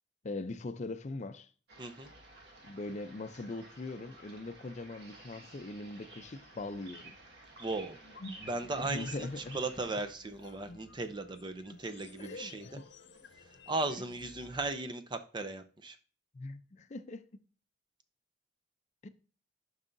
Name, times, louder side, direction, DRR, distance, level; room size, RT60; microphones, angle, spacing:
voice 1, 0.2-1.5 2.6-7.2 8.8-9.6 12.2-12.8 16.3-17.4 19.0-19.1, left 2 dB, 40° left, 0.5 m, -41 dB
sound 1, 1.7-10.1, right 2 dB, 65° right, 1.7 m, -52 dB
voice 2, 1.8-2.1 7.6-8.0 8.4-12.7 13.7-16.0, right 2 dB, 25° right, 0.6 m, -37 dB
sound 2, 8.0-14.7, left 2 dB, 65° left, 0.8 m, -52 dB
11.0 x 5.5 x 2.6 m
head